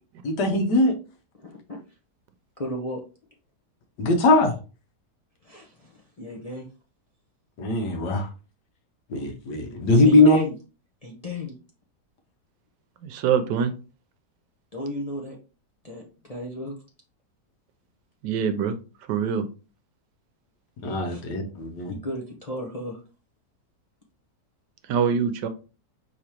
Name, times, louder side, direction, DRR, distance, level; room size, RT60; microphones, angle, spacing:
voice 1, 0.2-0.9 4.0-4.6 7.6-8.3 9.1-10.4 20.8-21.9, left 2 dB, 75° left, 5 dB, 1.5 m, -20 dB
voice 2, 1.4-1.8 2.6-3.0 5.4-6.7 10.0-10.5 11.0-11.5 14.7-15.4 15.8-16.8 21.1-21.2 21.9-23.0, left 2 dB, 40° left, -1 dB, 0.5 m, -33 dB
voice 3, 13.0-13.7 18.2-18.8 19.1-19.5 24.9-25.5, right 7 dB, 80° right, 10 dB, 1.2 m, -24 dB
4.9 x 3.6 x 2.9 m, 0.33 s
omnidirectional pair, 1.8 m